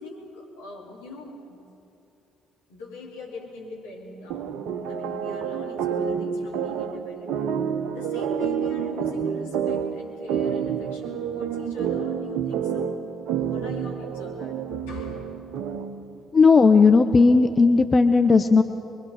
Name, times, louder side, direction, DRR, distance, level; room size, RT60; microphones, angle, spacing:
voice 1, 0.0-1.6 2.7-13.0 13.3-15.4, left 3 dB, 75° left, -4 dB, 3.9 m, -42 dB
sound 1, 4.3-16.1, right 7 dB, 65° right, 1.1 m, -29 dB
voice 2, 16.3-18.6, left 4 dB, 35° left, 9 dB, 1.0 m, -16 dB
23.5 x 23.5 x 6.6 m, 2.8 s
figure-of-eight pair, 45°, 0 cm